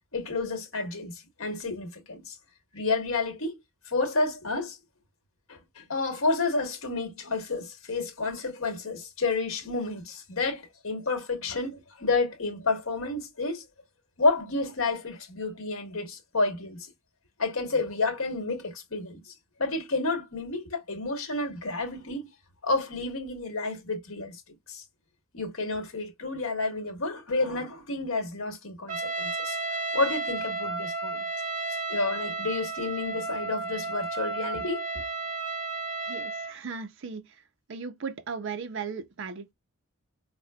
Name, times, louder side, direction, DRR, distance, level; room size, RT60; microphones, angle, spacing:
voice 1, 0.1-2.4 2.7-3.6 3.9-4.8 5.5-13.6 14.2-16.9 17.4-19.3 19.6-22.3 22.6-24.4 24.7-24.8 25.3-29.6 29.9-31.3 31.9-34.9, left 3 dB, 70° left, 1.2 m, -30 dB
Trumpet, 28.9-36.6, right 3 dB, 35° right, 1.2 m, -33 dB
voice 2, 36.1-37.4 37.7-39.5, right 5 dB, 55° right, 0.5 m, -37 dB
5.0 x 2.1 x 2.2 m
head